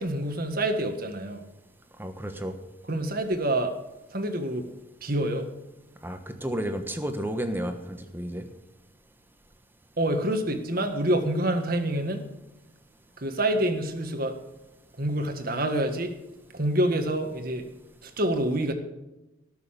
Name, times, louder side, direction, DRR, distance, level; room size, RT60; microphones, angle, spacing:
voice 1, 0.0-1.4 2.9-3.7 4.1-4.7 5.0-5.4 10.0-12.2 13.2-14.3 15.0-16.1 16.5-17.6 18.0-18.7, right 1 dB, 45° right, 6 dB, 1.7 m, -27 dB
voice 2, 2.0-2.6 6.0-8.5, right 1 dB, 10° right, 6 dB, 1.2 m, -32 dB
18.5 x 6.9 x 6.6 m, 0.99 s
head